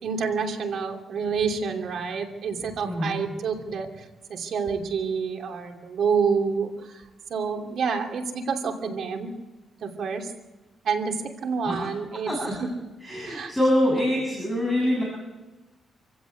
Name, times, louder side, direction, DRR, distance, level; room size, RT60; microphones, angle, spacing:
voice 1, 0.0-4.0 4.3-7.0 7.3-9.3 9.8-10.3 10.8-12.3 12.6-12.7 13.2-13.5, right 5 dB, 65° right, 4 dB, 2.9 m, -28 dB
voice 2, 2.8-3.2 11.7-11.8 12.3-12.5 13.0-15.0, left 1 dB, ahead, -3 dB, 7.1 m, -24 dB
27.5 x 16.0 x 8.3 m, 1.1 s
cardioid pair, 130°, 0 cm